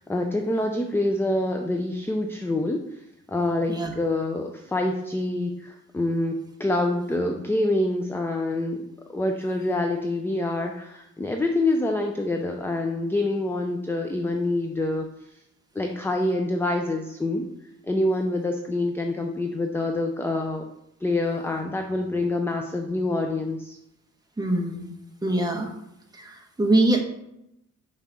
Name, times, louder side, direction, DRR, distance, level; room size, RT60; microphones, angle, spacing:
voice 1, 0.1-2.8 3.3-8.8 9.1-15.1 15.8-17.5 17.9-20.7 21.0-23.8, left 2 dB, 10° left, 4 dB, 0.4 m, -26 dB
voice 2, 24.4-24.9 25.2-25.7 26.1-27.0, right 1 dB, 15° right, 1 dB, 1.1 m, -23 dB
5.7 x 4.0 x 6.1 m, 0.83 s
wide cardioid pair, 150°, 29 cm